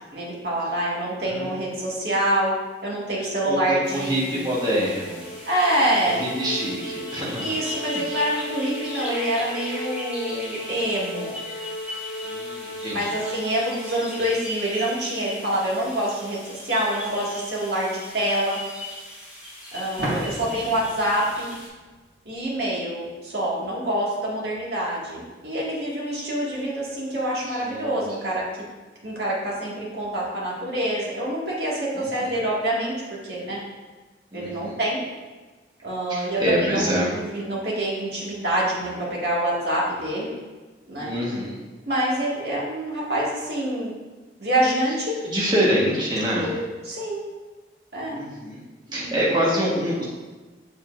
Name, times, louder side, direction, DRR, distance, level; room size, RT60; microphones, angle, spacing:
voice 1, 0.1-2.5 2.8-4.5 5.4-6.2 7.4-11.3 12.9-18.6 19.7-21.6 22.3-28.4 29.0-33.6 34.3-35.0 35.8-36.9 37.1-40.3 40.9-41.1 41.9-43.9 44.4-45.2 46.3-47.2 47.9-48.2 48.9-49.1, right 1 dB, 60° right, -6 dB, 2.1 m, -26 dB
voice 2, 1.3-1.7 3.4-5.3 6.0-7.5 7.9-8.2 11.9-13.1 19.9-20.4 27.5-28.0 31.9-32.4 34.3-34.7 36.1-37.1 41.0-41.6 45.2-46.5 48.1-48.6 48.9-50.0, equal, 25° right, -6 dB, 1.4 m, -26 dB
sound 1, 3.8-21.7, left 1 dB, 5° right, 1.8 m, -38 dB
sound 2, 4.2-14.6, left 1 dB, 80° left, 1.3 m, -37 dB
sound 3, 20.0-22.6, equal, 85° right, 2.0 m, -34 dB
7.5 x 6.9 x 2.6 m, 1.3 s
head